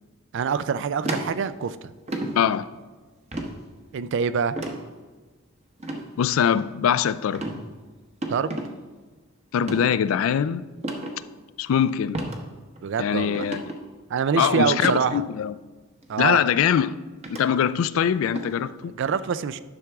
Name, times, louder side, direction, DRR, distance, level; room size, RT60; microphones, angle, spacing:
voice 1, 0.3-1.9 3.9-4.6 8.3-8.6 12.8-13.5 14.1-15.2 16.1-16.5 18.8-19.6, right 6 dB, 60° right, 0.4 m, -25 dB
sound 1, 1.0-1.7 2.1-2.3 3.3-3.5 4.6-4.8 5.8-6.0 6.5-6.9 7.3-7.6 8.2-8.7 9.6-9.8 10.8-11.1 12.1-12.4 12.8-12.9 13.3-13.8 14.7-15.0 16.0-16.1 17.2-17.4 18.4-18.5, right 1 dB, 30° right, 0.9 m, -31 dB
voice 2, 2.4-2.7 6.2-7.5 9.5-10.7 11.6-12.2 13.0-13.6 14.4-15.5 16.2-16.9 17.3-18.9, left 8 dB, 70° left, 0.3 m, -22 dB
10.5 x 6.0 x 3.5 m
head